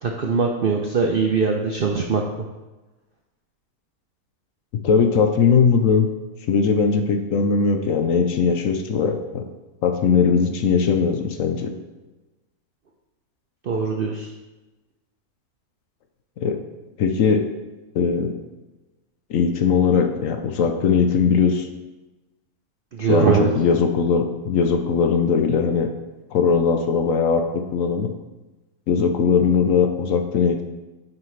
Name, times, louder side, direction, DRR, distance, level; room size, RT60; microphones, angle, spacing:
voice 1, 0.0-2.2 13.6-14.3 22.9-23.5, right 5 dB, 60° right, 1 dB, 0.5 m, -21 dB
voice 2, 4.8-6.1 6.5-9.5 9.8-11.7 16.4-16.6 17.0-17.5 17.9-18.3 19.3-21.7 23.1-25.9 26.3-28.1 28.9-30.6, left 5 dB, 65° left, 5 dB, 1.0 m, -19 dB
9.2 x 5.1 x 3.2 m, 1.1 s
omnidirectional pair, 1.6 m